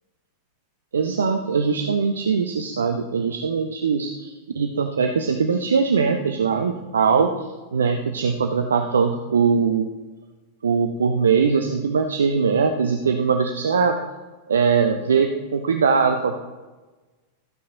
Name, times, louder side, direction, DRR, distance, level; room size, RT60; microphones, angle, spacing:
voice 1, 0.9-7.3 7.7-9.9 10.6-14.0 14.5-16.3, right 5 dB, 70° right, 6 dB, 0.7 m, -21 dB
14.0 x 8.5 x 3.8 m, 1.2 s
figure-of-eight pair, 90°, 0 cm